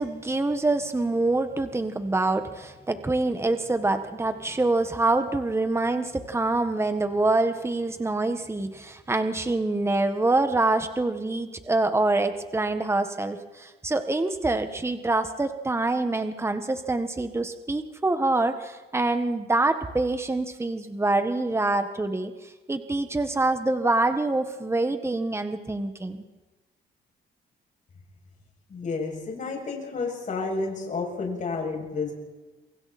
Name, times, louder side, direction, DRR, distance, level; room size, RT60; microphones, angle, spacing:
voice 1, 0.0-22.3 22.7-26.2, right 2 dB, 15° right, 8 dB, 1.7 m, -25 dB
voice 2, 28.7-32.1, left 4 dB, 40° left, -1 dB, 7.8 m, -30 dB
28.0 x 24.5 x 4.5 m, 1.2 s
cardioid pair, 100°, 19 cm